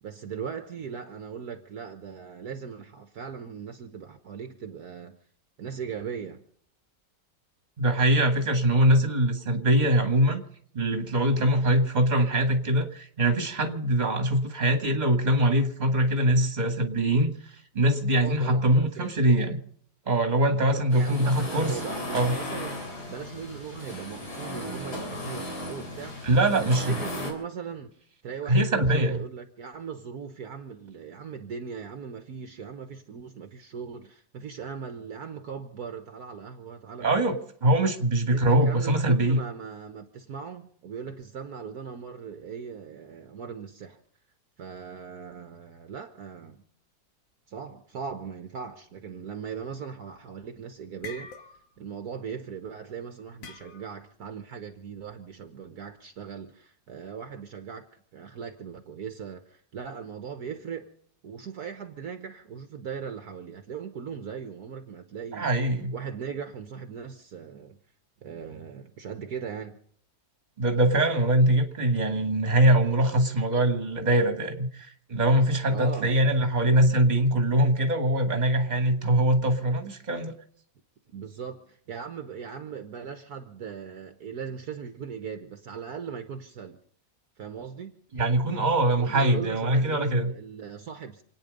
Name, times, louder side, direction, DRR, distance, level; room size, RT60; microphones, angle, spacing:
voice 1, 0.0-5.2 5.6-6.4 18.1-19.2 20.5-26.2 26.6-27.9 28.2-37.1 38.3-44.0 44.6-46.6 47.5-51.3 51.8-57.9 58.1-60.9 61.2-65.6 65.9-67.8 68.2-69.8 75.7-76.2 81.1-86.8 87.4-87.9 89.0-91.2, right 6 dB, 60° right, 1.6 m, -39 dB
voice 2, 7.8-10.4 10.7-19.6 20.1-21.8 22.1-22.4 26.2-27.0 28.5-29.2 37.0-39.4 65.3-65.9 70.6-80.3 88.1-90.3, right 1 dB, 25° right, 2.1 m, -23 dB
sound 1, 20.9-27.3, left 1 dB, 60° left, 4.2 m, -36 dB
sound 2, 50.1-50.5 50.8-51.9 52.1-52.4 53.4-54.1, left 5 dB, 90° left, 2.1 m, -44 dB
28.5 x 9.6 x 5.3 m
omnidirectional pair, 1.9 m